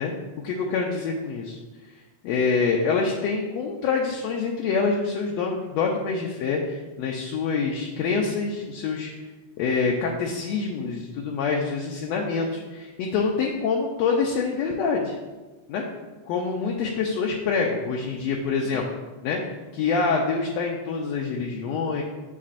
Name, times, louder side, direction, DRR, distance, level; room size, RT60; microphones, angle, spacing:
voice 1, 0.0-1.6 2.2-9.1 9.6-15.1 15.7-15.8 16.3-18.8 19.2-19.4 19.7-22.0, left 4 dB, 75° left, 0 dB, 1.7 m, -26 dB
8.4 x 7.0 x 2.5 m, 1.2 s
omnidirectional pair, 3.5 m